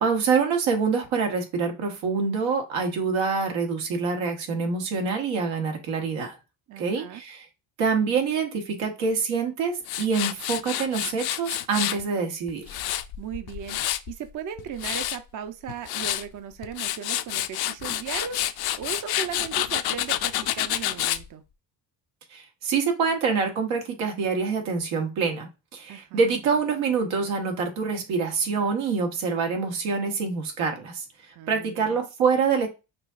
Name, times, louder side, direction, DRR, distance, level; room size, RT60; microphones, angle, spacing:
voice 1, 0.0-6.4 6.8-7.4 7.8-12.8 22.3-31.0 31.5-32.7, right 5 dB, 90° right, 1.2 m, -26 dB
voice 2, 6.7-7.2 13.2-13.8 14.1-18.4 18.8-21.4 25.9-26.2 31.4-32.0, right 8 dB, 40° right, 0.6 m, -37 dB
Tools, 9.8-12.0 12.5-14.1 14.6-15.2 15.7-16.2 16.6-21.2, left 13 dB, 55° left, 0.5 m, -28 dB
6.0 x 2.7 x 2.4 m
cardioid pair, 100°, 47 cm